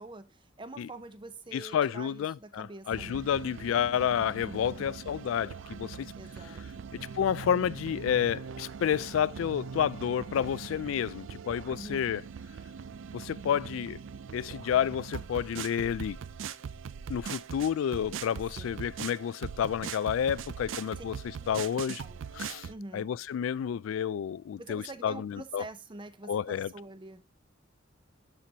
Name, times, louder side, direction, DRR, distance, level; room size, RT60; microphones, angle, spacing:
voice 1, 0.0-3.3 4.5-4.9 6.2-6.9 11.7-12.1 18.6-18.8 21.0-21.1 21.4-21.7 22.0-22.2 22.7-23.1 24.6-27.2, right 2 dB, 25° right, 0.6 m, -46 dB
voice 2, 1.5-6.1 7.1-12.2 13.1-14.0 14.3-16.2 17.1-21.1 21.5-22.0 22.3-22.7 22.9-25.6 26.3-26.7, left 8 dB, 80° left, 0.3 m, -30 dB
sound 1, 2.9-22.7, right 6 dB, 70° right, 0.4 m, -41 dB
12.5 x 4.5 x 2.8 m
head